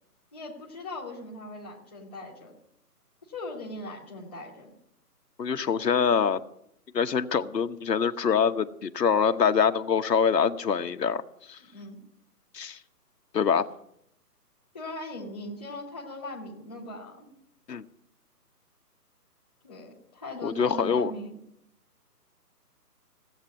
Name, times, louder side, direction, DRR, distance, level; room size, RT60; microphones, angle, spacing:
voice 1, 0.3-2.5 3.3-4.7 11.6-12.0 14.7-17.3 19.6-21.4, left 1 dB, 5° left, -10 dB, 1.1 m, -39 dB
voice 2, 5.4-6.4 6.9-11.2 11.5-11.6 12.5-12.8 13.3-13.7 17.7-17.8 20.4-21.1, left 6 dB, 85° left, 8 dB, 1.1 m, -24 dB
16.5 x 8.2 x 9.0 m, 0.76 s
hypercardioid pair, 175°, 48 cm